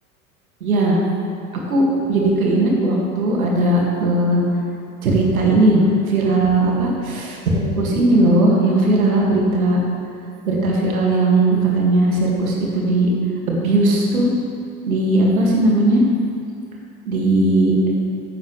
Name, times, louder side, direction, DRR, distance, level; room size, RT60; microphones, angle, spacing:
voice 1, 0.6-1.0 1.7-1.8 2.1-4.4 5.0-9.8 10.5-13.1 13.5-14.3 14.9-16.0 17.1-17.7, right 2 dB, 70° right, -2 dB, 2.5 m, -17 dB
15.0 x 10.5 x 3.4 m, 2.5 s
figure-of-eight pair, 75°, 43 cm